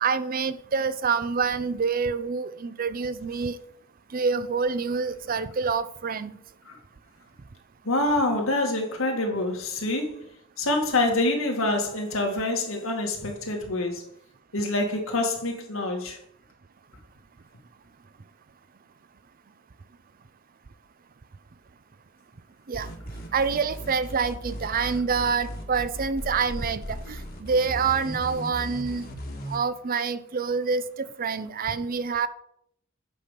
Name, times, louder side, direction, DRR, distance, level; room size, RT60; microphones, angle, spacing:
voice 1, 0.0-3.6 4.1-6.3 22.7-22.9 23.3-29.0 29.5-30.8 31.2-32.3, right 5 dB, 45° right, 0.5 m, -27 dB
voice 2, 7.9-10.2 10.6-14.0 14.5-16.2, left 2 dB, 80° left, 2.0 m, -26 dB
sound 1, 22.7-29.6, equal, 45° left, 1.5 m, -37 dB
8.4 x 5.9 x 5.2 m
head